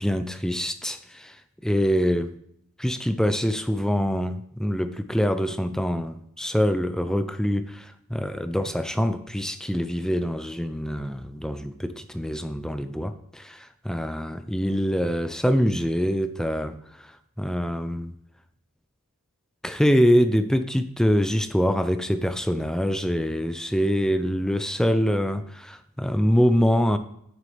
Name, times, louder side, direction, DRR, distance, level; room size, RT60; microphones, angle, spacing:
voice 1, 0.0-1.4 1.6-2.3 2.8-16.8 17.4-18.1 19.6-27.0, equal, 5° left, 10 dB, 0.5 m, -24 dB
9.5 x 9.3 x 3.3 m, 0.74 s
head